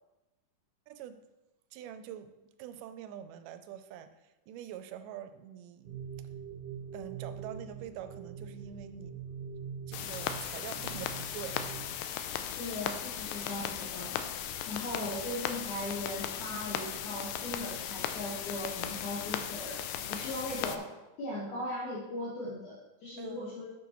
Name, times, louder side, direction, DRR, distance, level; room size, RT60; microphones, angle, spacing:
voice 1, 0.9-1.2 1.7-2.3 2.6-6.0 6.9-9.2 9.9-11.6 23.2-23.5, right 10 dB, 80° right, 10 dB, 2.1 m, -45 dB
sound 1, 5.8-11.9, right 7 dB, 60° right, 1.1 m, -43 dB
sound 2, 9.9-20.8, left 10 dB, 85° left, 2.3 m, -37 dB
voice 2, 12.6-14.1 14.7-19.8 20.1-20.9 21.2-23.7, left 1 dB, 65° left, -7 dB, 2.8 m, -38 dB
10.5 x 6.5 x 3.0 m, 1.0 s
omnidirectional pair, 3.9 m